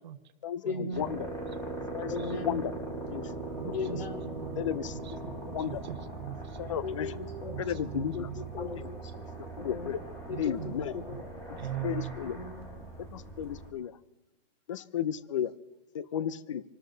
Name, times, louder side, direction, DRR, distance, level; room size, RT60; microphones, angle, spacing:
voice 1, 0.6-1.1 2.1-2.6 3.7-4.4 5.2-5.5 6.8-9.1 9.5-9.9 10.3-11.2 12.2-12.8, left 4 dB, 70° left, 4 dB, 3.7 m, -38 dB
sound 1, 0.9-13.7, right 2 dB, 10° left, 3.1 m, -40 dB
voice 2, 3.5-4.0 4.3-5.3 5.6-6.7 7.5-8.6 10.3-10.7 11.1-11.2 11.6-12.2, right 12 dB, 45° right, 8 dB, 1.1 m, -41 dB
voice 3, 4.6-4.9 5.5-5.8 6.6-7.1 7.6-8.3 9.6-10.0 10.4-10.9 11.8-12.4 13.1-13.9 14.7-15.5 15.9-16.6, left 9 dB, 30° left, 18 dB, 0.6 m, -33 dB
26.5 x 13.0 x 3.9 m, 1.1 s
hypercardioid pair, 175°, 31 cm